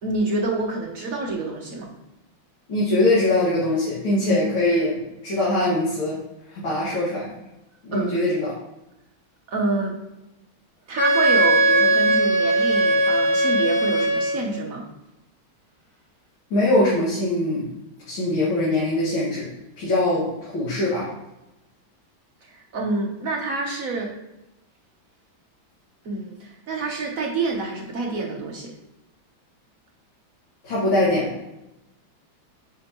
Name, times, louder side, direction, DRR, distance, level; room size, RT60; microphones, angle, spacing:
voice 1, 0.0-1.9 7.9-8.2 9.5-9.9 10.9-14.8 22.4-24.1 26.0-28.7, right 3 dB, 55° right, 0 dB, 1.1 m, -27 dB
voice 2, 2.7-6.2 6.5-7.3 7.8-8.5 16.5-17.7 18.1-19.5 19.8-21.1 30.6-31.3, left 1 dB, 85° left, -9 dB, 2.7 m, -22 dB
Wind instrument woodwind instrument, 11.0-14.5, right 1 dB, 15° left, 1.6 m, -19 dB
8.6 x 4.9 x 3.0 m, 0.94 s
omnidirectional pair, 2.2 m